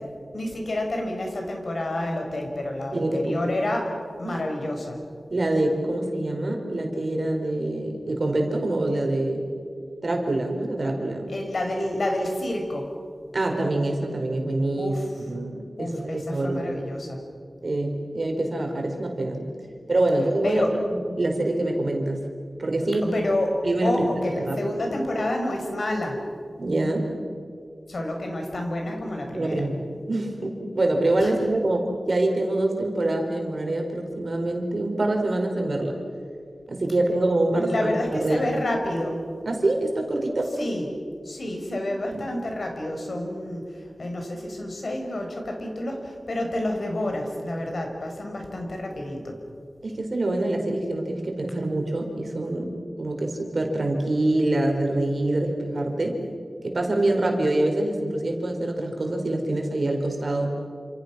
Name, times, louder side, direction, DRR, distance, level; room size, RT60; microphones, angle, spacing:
voice 1, 0.3-3.9 4.2-5.0 11.3-12.9 14.8-15.1 15.8-17.2 20.4-20.7 23.0-23.5 23.8-26.2 27.9-29.6 31.2-31.3 37.5-39.2 40.6-40.9 41.2-49.3, left 1 dB, 60° left, 2 dB, 5.5 m, -29 dB
voice 2, 2.9-3.3 4.2-4.4 5.3-9.4 10.0-11.3 13.3-14.9 15.3-16.7 17.6-19.5 19.9-22.2 22.6-23.1 23.6-23.9 24.5-24.6 26.6-27.1 29.3-29.8 30.1-36.0 36.7-38.5 39.4-40.5 41.7-41.8 42.1-42.2 49.8-52.7 53.0-56.2 56.6-60.6, right 2 dB, 55° right, 2 dB, 4.6 m, -25 dB
29.0 x 27.5 x 6.2 m, 2.3 s
wide cardioid pair, 80°, 0 cm